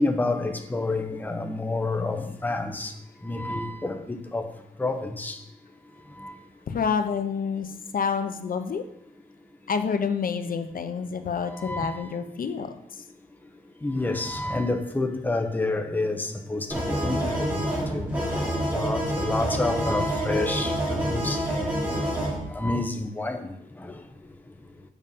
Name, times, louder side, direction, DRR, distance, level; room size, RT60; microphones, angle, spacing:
voice 1, 0.0-2.9 3.2-4.0 4.3-4.5 4.8-5.4 6.2-6.3 11.6-12.0 13.8-17.6 17.9-18.1 18.7-21.9 22.5-23.4, left 2 dB, 10° left, 0.7 m, -28 dB
voice 2, 6.7-8.8 9.7-12.7, left 6 dB, 70° left, 0.6 m, -28 dB
sound 1, 16.7-22.4, right 1 dB, 10° right, 2.9 m, -27 dB
7.3 x 5.4 x 5.4 m
wide cardioid pair, 165°, 15 cm